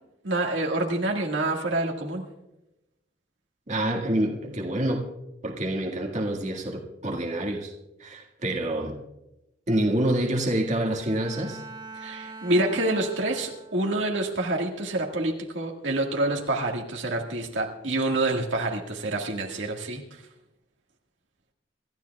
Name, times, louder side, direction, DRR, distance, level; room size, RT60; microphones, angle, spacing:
voice 1, 0.2-2.2 12.0-20.2, right 2 dB, 75° right, 0 dB, 1.8 m, -27 dB
voice 2, 3.7-5.1 5.4-7.7 8.0-9.0 9.7-11.6, right 1 dB, 40° right, 0 dB, 1.8 m, -27 dB
Bowed string instrument, 10.9-14.1, right 4 dB, 20° right, 1.5 m, -43 dB
26.5 x 13.0 x 2.3 m, 0.92 s
head